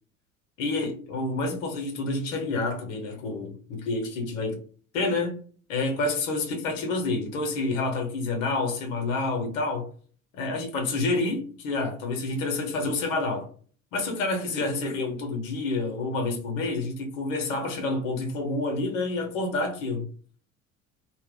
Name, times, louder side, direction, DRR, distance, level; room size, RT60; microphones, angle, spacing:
voice 1, 0.6-4.6 4.9-5.4 5.7-9.9 10.3-13.5 13.9-20.1, left 3 dB, 70° left, 0.7 m, -28 dB
2.0 x 2.0 x 3.6 m
figure-of-eight pair, 55°, 40 cm